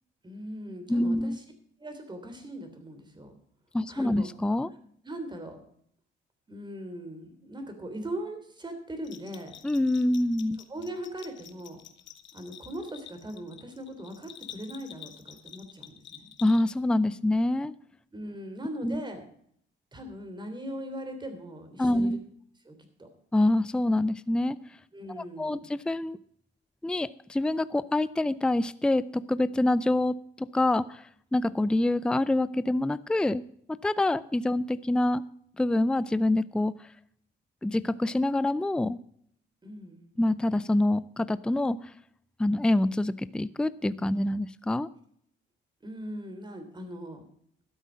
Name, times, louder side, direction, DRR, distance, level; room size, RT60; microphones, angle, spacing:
voice 1, 0.2-1.4 1.8-3.3 3.9-4.3 5.0-5.6 6.5-9.6 10.7-11.8 12.3-16.3 18.1-19.2 19.9-22.2 22.6-23.1 24.9-25.6 39.6-40.1 45.8-47.2, right 1 dB, 20° right, 6 dB, 3.2 m, -40 dB
voice 2, 0.9-1.4 3.7-4.7 9.6-10.6 16.4-17.7 18.8-19.0 21.8-22.2 23.3-24.6 25.1-26.2 26.8-33.4 33.7-35.2 35.6-36.7 37.6-39.0 40.2-41.8 42.4-44.9, left 1 dB, 5° left, 17 dB, 0.4 m, -26 dB
Bell, 9.0-16.9, left 10 dB, 70° left, 1.2 m, -49 dB
12.5 x 8.0 x 6.2 m, 0.65 s
cardioid pair, 90°, 20 cm